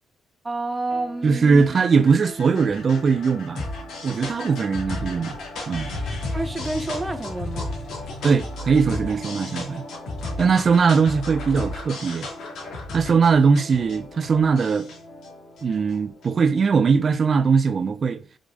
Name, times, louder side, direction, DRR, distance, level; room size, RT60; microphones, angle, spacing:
voice 1, 0.4-1.6 6.3-7.7, right 2 dB, 15° right, 1.0 m, -29 dB
sound 1, 0.9-16.4, left 2 dB, 70° left, 2.6 m, -34 dB
voice 2, 1.2-3.7 4.0-5.4 5.7-5.9 8.2-9.8 10.4-12.3 12.9-14.9 15.6-18.2, right 5 dB, 45° right, 0.5 m, -20 dB
5.2 x 5.0 x 5.2 m
cardioid pair, 90°, 0 cm